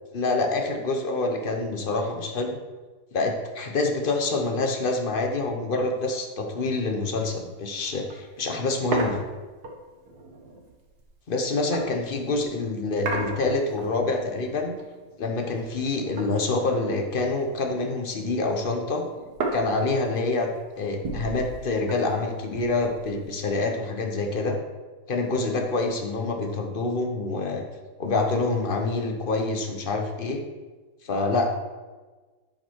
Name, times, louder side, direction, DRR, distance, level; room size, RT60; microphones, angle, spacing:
voice 1, 0.1-2.6 3.1-9.2 11.3-14.7 15.2-19.0 19.5-20.5 20.8-24.6 25.1-27.6 28.0-30.4 31.0-31.5, left 3 dB, 40° left, 3 dB, 0.7 m, -26 dB
sound 1, 7.2-7.4 7.7-7.8 8.1-12.5 13.0-14.2 14.5-15.9 16.2-17.9 18.2-23.4, right 3 dB, 55° right, 1.6 m, -36 dB
11.0 x 5.1 x 4.6 m, 1.3 s
omnidirectional pair, 2.2 m